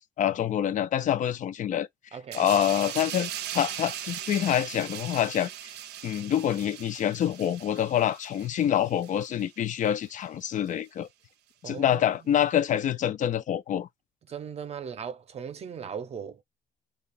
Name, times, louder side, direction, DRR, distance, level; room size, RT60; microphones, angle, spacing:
voice 1, 0.2-1.9 2.3-5.5 6.0-11.1 11.6-13.9, left 10 dB, 50° left, 0.4 m, -26 dB
voice 2, 2.1-2.5 11.6-12.4 14.3-16.4, right 7 dB, 40° right, 0.6 m, -38 dB
sound 1, 2.3-9.5 9.8-10.1, right 12 dB, 80° right, 0.4 m, -39 dB
2.8 x 2.4 x 4.0 m
cardioid pair, 110°, 17 cm